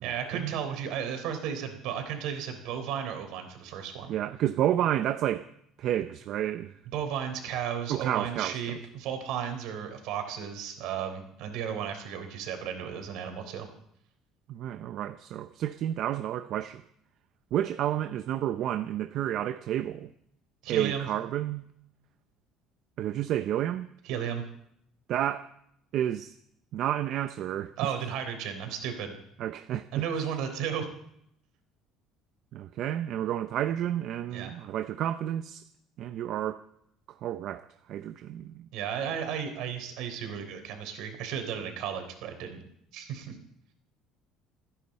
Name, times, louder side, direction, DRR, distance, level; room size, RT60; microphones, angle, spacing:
voice 1, 0.0-4.1 6.9-13.7 20.6-21.1 24.0-24.4 27.8-29.1 29.9-30.9 34.3-34.5 38.7-42.6 42.9-43.4, right 8 dB, 70° right, 3.6 m, -34 dB
voice 2, 4.1-5.5 5.8-6.7 7.9-8.8 14.5-16.8 17.5-20.1 20.7-21.6 23.0-23.9 25.1-25.5 25.9-26.3 26.7-27.9 29.4-30.0 32.5-35.6 36.0-36.6 37.2-38.7, right 11 dB, 50° right, 0.6 m, -30 dB
29.0 x 10.0 x 4.2 m
cardioid pair, 160°, 0 cm